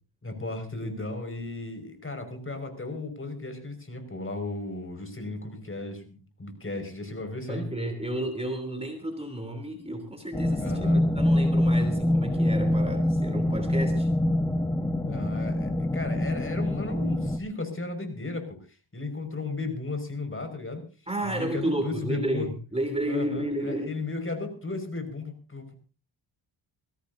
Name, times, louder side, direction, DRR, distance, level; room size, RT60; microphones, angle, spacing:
voice 1, 0.2-7.7 10.6-11.0 15.1-18.6 18.9-20.8 21.2-22.5 23.0-25.7, left 2 dB, 25° left, 7 dB, 5.7 m, -35 dB
voice 2, 7.5-14.1 21.1-24.0, right 1 dB, 10° right, 5 dB, 3.2 m, -32 dB
sound 1, 10.3-17.4, left 1 dB, 10° left, 1.7 m, -25 dB
23.0 x 17.0 x 2.8 m, 0.36 s
cardioid pair, 75°, 48 cm